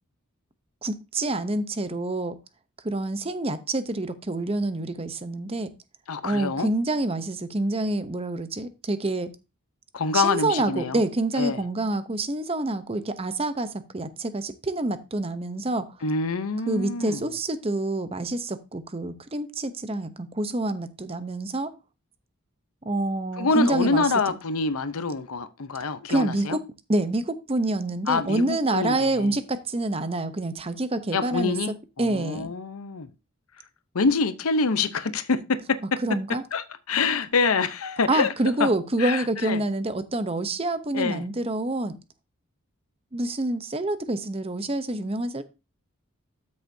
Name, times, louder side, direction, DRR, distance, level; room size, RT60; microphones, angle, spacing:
voice 1, 0.8-2.4 2.8-5.7 6.2-9.3 10.1-15.9 16.7-21.7 22.8-24.1 26.1-26.6 26.9-31.6 32.0-32.5 36.0-36.4 38.1-42.0 43.1-45.4, right 2 dB, 25° right, 0.7 m, -27 dB
voice 2, 6.1-6.7 9.9-11.0 11.4-11.6 16.0-17.3 23.4-26.6 28.1-29.4 31.1-33.1 33.9-36.0 36.5-38.3 38.6-38.7 39.0-39.6 40.9-41.2, left 4 dB, 90° left, 0.8 m, -26 dB
12.5 x 6.5 x 2.7 m
head